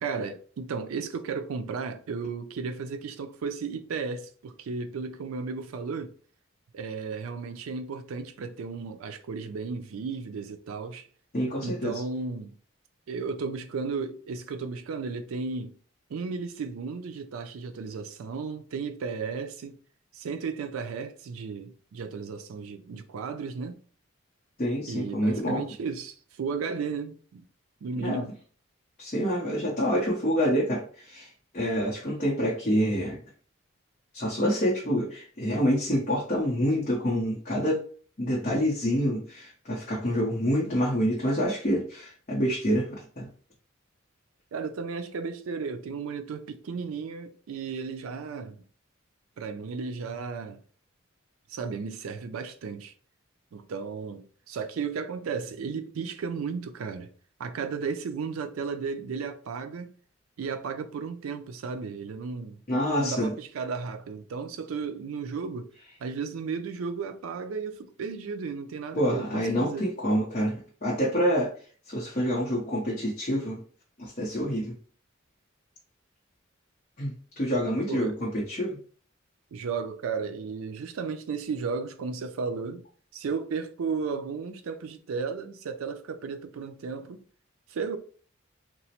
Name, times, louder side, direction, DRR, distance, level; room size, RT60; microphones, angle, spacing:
voice 1, 0.0-6.1 6.7-11.1 11.6-12.5 13.1-15.8 16.1-19.7 20.1-23.8 24.9-27.4 27.8-28.3 44.5-48.6 49.4-50.6 51.5-52.9 53.5-57.1 57.4-59.9 60.4-62.6 63.0-65.7 66.0-69.9 77.9-78.2 79.5-82.8 83.1-87.2 87.7-88.0, right 5 dB, 85° right, 0.4 m, -34 dB
voice 2, 11.3-12.0 24.6-25.6 28.0-28.2 29.0-33.2 34.1-37.8 38.2-43.3 62.7-63.3 69.0-71.5 71.9-73.6 74.0-74.7 77.0-78.8, equal, 35° left, 0.6 m, -27 dB
2.9 x 2.0 x 2.8 m
head